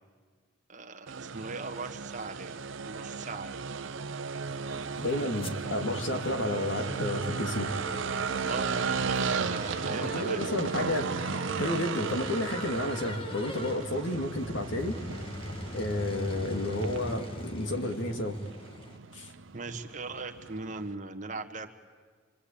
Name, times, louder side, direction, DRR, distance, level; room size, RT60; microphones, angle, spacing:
voice 1, 0.7-2.5 2.8-3.6 8.4-10.5 19.5-21.7, right 3 dB, 40° right, 4 dB, 1.5 m, -39 dB
sound 1, 1.1-20.9, right 5 dB, 80° right, 0.8 m, -36 dB
sound 2, 4.4-19.0, equal, 30° left, 1.8 m, -41 dB
voice 2, 5.0-7.7 9.9-11.1 11.5-15.0 15.7-18.4 19.1-19.3, left 1 dB, 70° left, 5 dB, 2.2 m, -31 dB
27.0 x 23.5 x 8.6 m, 1.5 s
head